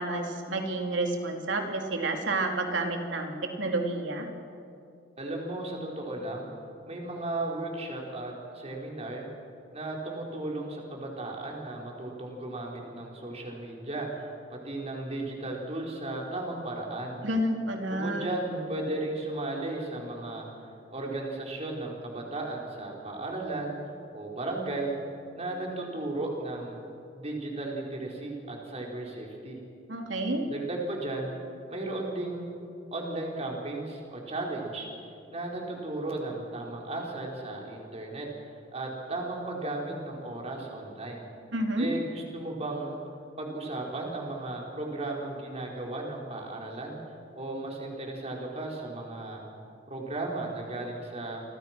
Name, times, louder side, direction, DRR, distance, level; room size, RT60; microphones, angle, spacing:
voice 1, 0.0-4.3 17.2-18.3 29.9-30.5 41.5-41.9, right 2 dB, 90° right, 2 dB, 3.4 m, -30 dB
voice 2, 5.2-6.5 6.9-9.3 9.7-17.2 17.9-20.5 20.9-24.9 25.3-26.8 27.1-29.6 30.5-31.3 31.7-32.5 32.9-34.9 35.3-38.3 38.7-41.3 41.7-43.0 43.4-47.0 47.3-49.4 49.9-51.4, right 2 dB, 35° right, -1 dB, 5.0 m, -35 dB
29.5 x 25.0 x 6.2 m, 2.5 s
head